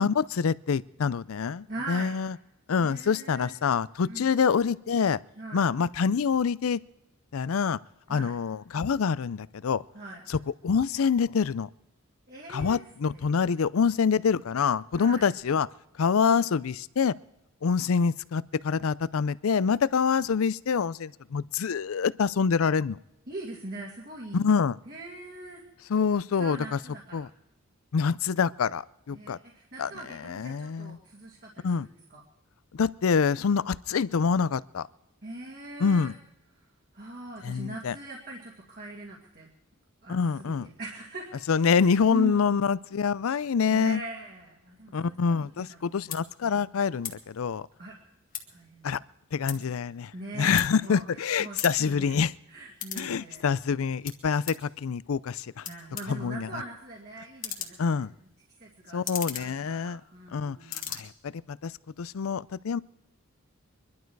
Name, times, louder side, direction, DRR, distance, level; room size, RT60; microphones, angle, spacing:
voice 1, 0.0-2.3 2.7-5.2 5.5-6.8 7.3-7.8 8.1-9.8 10.3-11.7 12.5-15.7 16.0-17.1 17.6-23.0 24.3-24.7 25.9-26.8 27.1-27.3 27.9-28.8 29.1-29.4 29.8-29.9 30.3-31.0 31.6-31.9 32.7-34.9 35.8-36.1 37.4-37.9 40.1-40.7 41.5-44.0 44.9-47.6 48.8-49.0 49.3-52.3 53.0-55.7 56.1-56.5 57.8-58.1 58.9-60.0 60.3-60.6 60.9-61.7 62.0-62.8, left 6 dB, 80° left, 19 dB, 0.5 m, -26 dB
voice 2, 1.7-2.1 2.8-3.5 4.0-4.3 5.4-5.7 8.1-8.3 9.9-10.2 12.3-12.8 13.1-13.2 13.5-13.8 14.9-15.3 23.3-24.6 24.8-25.6 26.4-27.3 29.1-32.2 35.2-36.1 36.6-36.7 36.9-39.5 40.0-41.3 41.7-42.7 43.7-46.0 47.8-47.9 48.5-49.0 49.5-49.6 50.1-53.5 55.6-58.3 58.6-61.0, right 2 dB, 45° right, -2 dB, 2.3 m, -42 dB
sound 1, 45.6-45.7 46.0-46.2 47.0-47.2 47.5-48.7 49.0-51.2 51.4-53.1 53.4-54.7 55.3-55.4 55.6-60.3 60.6-61.0, left 9 dB, 40° left, 1.7 m, -38 dB
24.0 x 12.0 x 4.7 m, 0.87 s
head